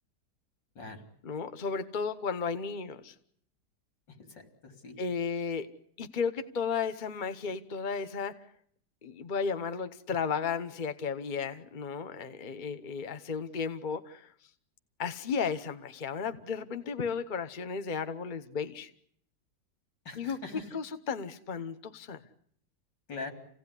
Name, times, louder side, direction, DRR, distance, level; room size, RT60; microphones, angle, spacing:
voice 1, 1.2-3.1 5.0-5.7 6.0-8.3 9.0-14.3 15.0-18.9 20.1-20.4 20.7-22.2, left 6 dB, 30° left, 1.2 m, -34 dB
voice 2, 4.1-5.0 20.1-20.8 23.1-23.3, left 3 dB, 90° left, 4.4 m, -43 dB
28.0 x 17.5 x 9.9 m
omnidirectional pair, 1.9 m